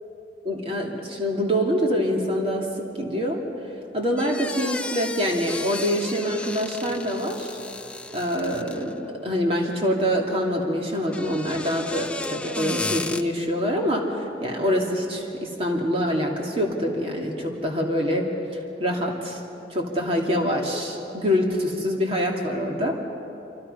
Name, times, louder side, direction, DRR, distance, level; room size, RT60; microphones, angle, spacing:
voice 1, 0.4-2.7 3.0-3.4 3.9-7.5 8.1-18.3 18.8-19.4 19.7-23.0, equal, 30° right, 0 dB, 2.8 m, -25 dB
sound 1, 4.2-9.0 11.0-13.2, left 2 dB, 5° left, 0.5 m, -34 dB
26.0 x 25.0 x 5.7 m, 3.0 s
head